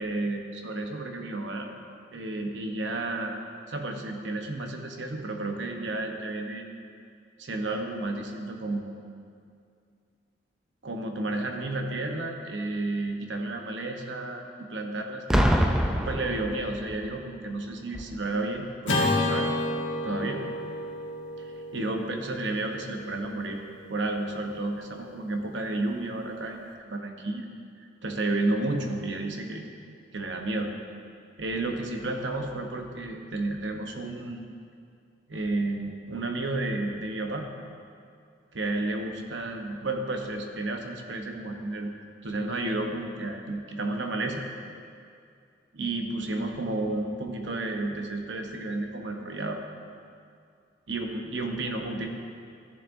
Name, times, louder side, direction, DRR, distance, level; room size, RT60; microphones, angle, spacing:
voice 1, 0.0-1.7 2.1-3.3 3.7-6.6 7.4-8.9 10.8-15.7 16.1-19.5 20.0-20.4 21.7-23.6 23.9-27.5 28.0-29.6 30.1-30.7 31.4-34.5 35.3-37.5 38.5-41.9 42.2-44.5 45.7-49.6 50.9-52.1, right 2 dB, 75° right, 3 dB, 0.9 m, -32 dB
Boom, 15.3-17.1 17.9-18.2, equal, 5° right, 0.3 m, -24 dB
Acoustic guitar / Strum, 18.8-23.3, left 2 dB, 90° left, 1.7 m, -30 dB
13.5 x 7.3 x 2.6 m, 2.4 s
head